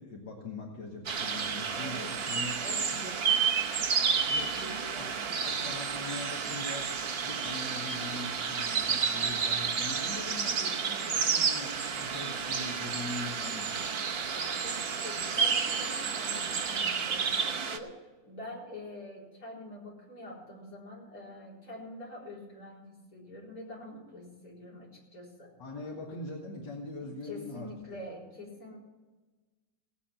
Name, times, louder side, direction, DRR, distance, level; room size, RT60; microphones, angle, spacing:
voice 1, 0.0-3.2 4.3-5.1 5.4-13.9 25.6-28.0, left 2 dB, 85° left, -2 dB, 2.5 m, -42 dB
sound 1, 1.0-17.8, right 6 dB, 45° right, 0.8 m, -31 dB
voice 2, 1.8-2.1 2.6-2.9 4.4-5.2 14.3-25.5 27.0-28.8, left 1 dB, 55° left, -5 dB, 4.5 m, -45 dB
17.5 x 8.4 x 5.8 m, 1.3 s
omnidirectional pair, 1.9 m